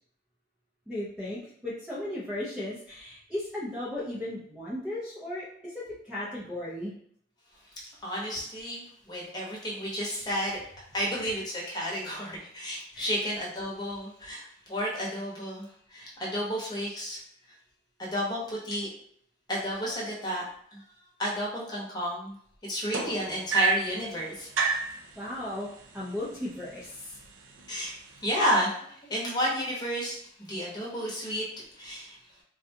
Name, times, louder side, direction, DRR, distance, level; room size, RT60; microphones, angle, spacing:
voice 1, 0.9-6.9 12.9-13.1 25.2-25.7 25.9-27.2, left 1 dB, 5° right, -9 dB, 0.5 m, -36 dB
voice 2, 8.0-8.8 9.1-10.6 10.9-17.2 18.0-18.9 19.5-20.4 20.7-20.8 21.2-22.3 22.7-24.5 27.7-27.9 28.2-28.7 29.0-31.4 31.8-32.2, equal, 20° left, -4 dB, 0.9 m, -31 dB
sound 1, 22.9-24.0 24.6-25.0 26.0-26.1 26.5-26.9 27.6-27.7, right 5 dB, 85° right, 0.5 m, -27 dB
3.7 x 2.3 x 2.7 m, 0.65 s
head